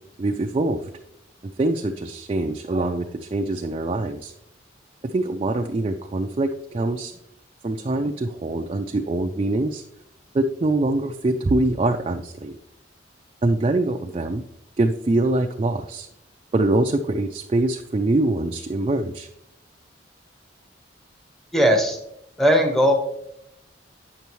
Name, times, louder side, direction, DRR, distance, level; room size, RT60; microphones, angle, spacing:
voice 1, 0.2-0.8 1.6-4.3 5.1-7.1 7.6-9.8 10.3-12.6 13.4-14.4 14.8-16.1 16.5-19.3, right 2 dB, 30° right, 3 dB, 0.4 m, -24 dB
voice 2, 21.5-22.0 22.4-22.9, equal, ahead, 2 dB, 0.8 m, -18 dB
8.7 x 6.8 x 3.0 m, 0.78 s
head